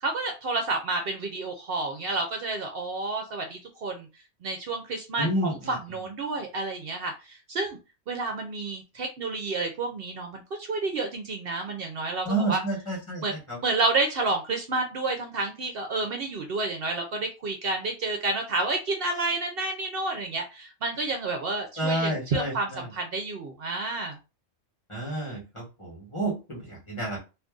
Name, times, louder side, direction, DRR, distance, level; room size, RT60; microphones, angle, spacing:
voice 1, 0.0-4.1 4.4-7.8 8.1-12.6 13.2-13.4 13.6-24.2, right 3 dB, 60° right, 4 dB, 0.7 m, -30 dB
voice 2, 5.2-5.7 12.2-13.2 13.5-13.6 21.8-22.8 24.9-27.2, right 1 dB, 25° left, -4 dB, 1.4 m, -30 dB
2.6 x 2.5 x 3.6 m, 0.29 s
omnidirectional pair, 1.2 m